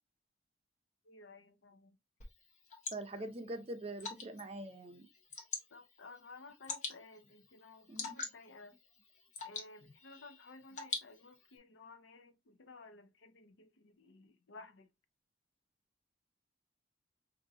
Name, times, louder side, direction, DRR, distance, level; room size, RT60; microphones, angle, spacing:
voice 1, 1.0-2.0 3.2-3.3 5.7-8.8 9.4-14.9, left 3 dB, 80° left, 0.6 m, -55 dB
Water / Drip, 2.2-11.6, left 4 dB, 40° left, 0.9 m, -46 dB
voice 2, 2.9-5.1 7.9-8.2, right 1 dB, 30° right, 0.6 m, -43 dB
5.0 x 2.6 x 2.6 m
head